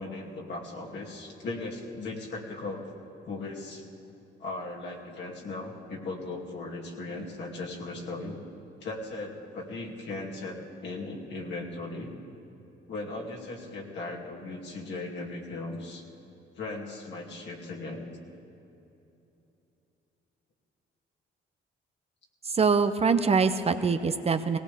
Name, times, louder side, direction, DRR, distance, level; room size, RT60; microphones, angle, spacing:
voice 1, 0.0-2.8 3.3-3.8 4.4-8.4 8.8-12.1 12.9-16.0 16.6-18.1, left 2 dB, 65° left, -2 dB, 2.6 m, -37 dB
voice 2, 22.4-24.6, right 5 dB, 30° right, 9 dB, 0.6 m, -24 dB
19.0 x 18.0 x 3.5 m, 2.9 s
cardioid pair, 90°, 20 cm